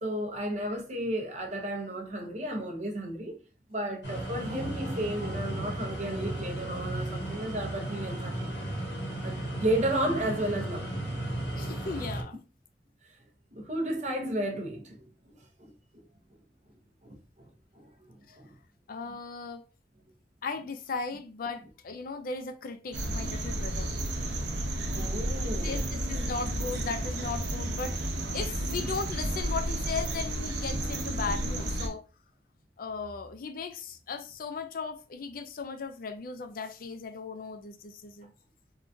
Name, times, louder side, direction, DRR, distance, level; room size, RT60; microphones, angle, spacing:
voice 1, 0.0-3.4 3.7-8.5 9.2-10.9 13.5-15.1 15.6-15.7 17.0-17.5 17.7-18.6 24.0-24.1 24.6-25.8, right 1 dB, 40° right, 0.7 m, -33 dB
sound 1, 4.0-12.2, right 1 dB, 85° left, 1.3 m, -35 dB
voice 2, 11.6-12.4 18.9-19.6 20.4-23.9 25.6-32.0 32.8-38.3, left 4 dB, 55° left, 0.4 m, -37 dB
sound 2, 22.9-31.9, right 1 dB, 85° right, 0.7 m, -32 dB
3.6 x 2.3 x 2.6 m
head